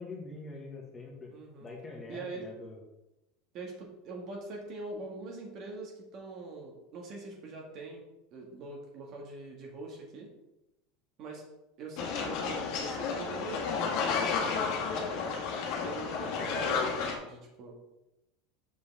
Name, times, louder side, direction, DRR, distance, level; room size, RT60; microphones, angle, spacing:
voice 1, 0.0-1.3 1.6-2.8 16.4-16.6, left 3 dB, 20° left, 0 dB, 1.8 m, -44 dB
voice 2, 1.3-1.7 2.1-2.4 3.5-8.0 8.3-10.3 11.2-11.4 11.8-15.2 15.8-17.8, right 3 dB, 45° right, 0 dB, 1.9 m, -43 dB
sound 1, 12.0-17.2, left 5 dB, 55° left, 1.6 m, -32 dB
6.8 x 5.2 x 3.5 m, 0.94 s
supercardioid pair, 115°, 0 cm